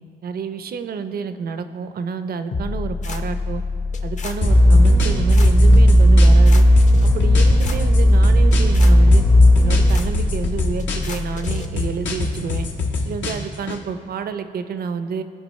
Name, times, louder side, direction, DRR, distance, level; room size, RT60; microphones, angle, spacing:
voice 1, 0.2-3.6 4.0-6.7 7.0-9.2 9.6-12.7 13.0-15.2, right 5 dB, 50° right, 10 dB, 0.5 m, -29 dB
sound 1, 2.5-11.7, left 3 dB, 40° left, 0.7 m, -27 dB
sound 2, 4.4-6.5 6.8-8.8 9.1-11.2 11.5-13.8, left 3 dB, 70° left, 1.1 m, -27 dB
sound 3, 4.4-10.0, equal, ahead, 0.5 m, -13 dB
15.0 x 5.0 x 3.1 m, 2.2 s
cardioid pair, 90°, 20 cm